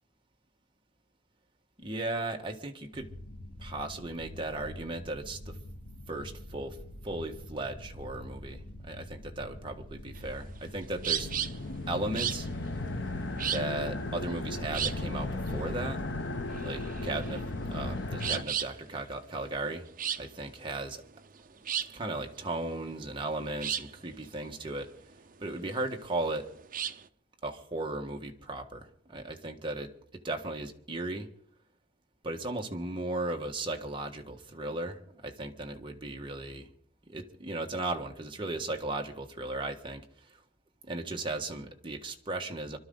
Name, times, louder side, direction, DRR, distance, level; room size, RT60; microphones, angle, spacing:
voice 1, 1.8-3.1 3.6-5.6 6.1-6.8 7.0-11.3 11.9-12.5 13.5-16.0 16.6-19.9 20.2-21.0 21.9-24.9 25.4-26.5 27.4-31.3 32.2-36.7 37.1-40.0 40.9-42.8, right 2 dB, 25° right, 3 dB, 1.5 m, -36 dB
sound 1, 2.9-17.3, left 1 dB, 85° left, 1.7 m, -46 dB
sound 2, 10.2-27.1, right 9 dB, 50° right, 0.7 m, -37 dB
sound 3, 11.0-18.4, left 2 dB, 70° left, 1.0 m, -36 dB
25.5 x 12.5 x 3.9 m, 0.67 s
head